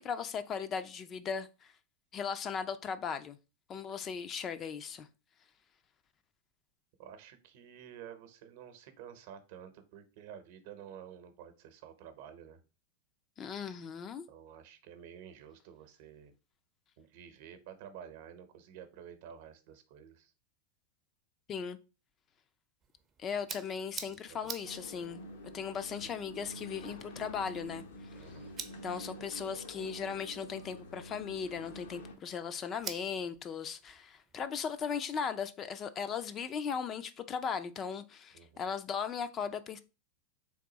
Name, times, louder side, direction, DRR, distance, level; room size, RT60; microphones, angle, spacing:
voice 1, 0.0-1.7 2.1-3.4 3.7-5.1 13.4-14.2 21.5-21.8 23.2-25.2 25.5-27.8 28.8-39.8, left 6 dB, 30° left, 0.4 m, -37 dB
voice 2, 7.0-12.6 14.3-16.3 17.0-20.3 24.0-24.5 28.1-28.5 38.3-38.7, right 9 dB, 60° right, 0.8 m, -51 dB
sound 1, 22.8-35.1, right 7 dB, 30° right, 0.5 m, -50 dB
sound 2, 24.6-32.1, equal, 80° left, 0.9 m, -48 dB
3.5 x 2.6 x 3.9 m
hypercardioid pair, 115°, 0 cm